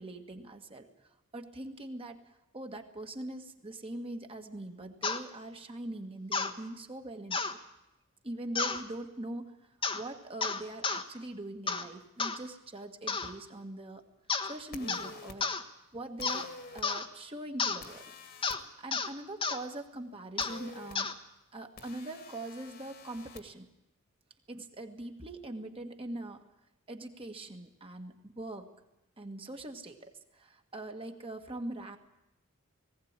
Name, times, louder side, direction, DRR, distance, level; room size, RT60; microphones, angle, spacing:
voice 1, 0.0-7.5 8.2-14.0 14.4-15.5 15.9-16.5 16.7-18.0 18.8-21.2 21.5-23.7 24.5-26.4 26.9-28.7 29.2-32.0, right 1 dB, 25° right, 4 dB, 1.8 m, -42 dB
sound 1, 5.0-5.2 6.3-6.5 7.3-7.6 8.5-8.8 9.8-10.0 10.4-11.0 11.7-11.9 12.2-12.4 13.1-13.3 14.3-14.5 14.9-15.1 15.4-15.6 16.2-16.5 16.8-17.1 17.6-17.8 18.4-18.6 18.9-19.1 19.4-19.6 20.4-20.6 20.9-21.1, left 4 dB, 25° left, 1.3 m, -32 dB
sound 2, 14.7-15.4 16.2-16.8 17.8-18.6 20.4-21.0 21.8-23.4, left 4 dB, 50° left, 2.2 m, -48 dB
19.5 x 17.0 x 8.9 m, 0.90 s
head